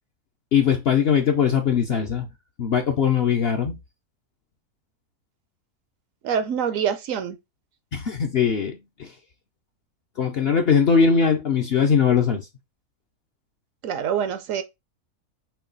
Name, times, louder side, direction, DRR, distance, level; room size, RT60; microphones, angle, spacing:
voice 1, 0.5-2.3 2.6-3.8 7.9-9.1 10.2-12.5, left 7 dB, 60° left, 0.7 m, -20 dB
voice 2, 6.2-7.4 13.8-14.6, right 8 dB, 70° right, 0.9 m, -25 dB
5.8 x 2.3 x 3.9 m
omnidirectional pair, 1.6 m